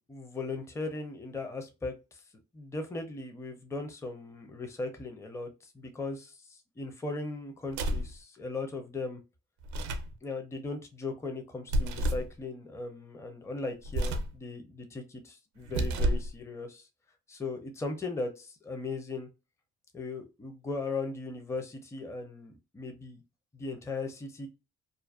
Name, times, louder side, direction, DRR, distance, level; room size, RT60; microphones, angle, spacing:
voice 1, 0.0-2.2 2.5-9.2 10.2-16.9 17.3-19.3 19.9-23.2 23.5-24.5, left 3 dB, 10° left, 0.5 m, -38 dB
sound 1, 7.7-8.2 9.6-10.1 11.7-12.3 13.8-14.4 15.6-16.3, right 1 dB, 70° right, 0.5 m, -30 dB
2.5 x 2.1 x 2.3 m
cardioid pair, 90°, 30 cm